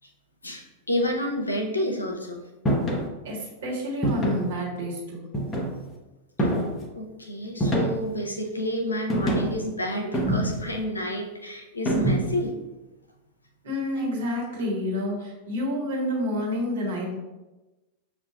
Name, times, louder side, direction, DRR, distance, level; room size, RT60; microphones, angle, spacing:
voice 1, 0.4-2.5 6.4-6.5 6.9-12.6, equal, 80° left, 2 dB, 0.6 m, -29 dB
sound 1, 2.7-3.1 4.0-4.5 5.3-5.9 6.4-6.9 7.6-8.2 9.1-9.6 10.1-10.8 11.9-12.5, right 1 dB, 20° left, 0.7 m, -25 dB
voice 2, 3.2-5.3 13.6-17.1, left 1 dB, 60° right, -4 dB, 1.4 m, -29 dB
6.5 x 2.4 x 2.3 m, 1.1 s
figure-of-eight pair, 90°, 0 cm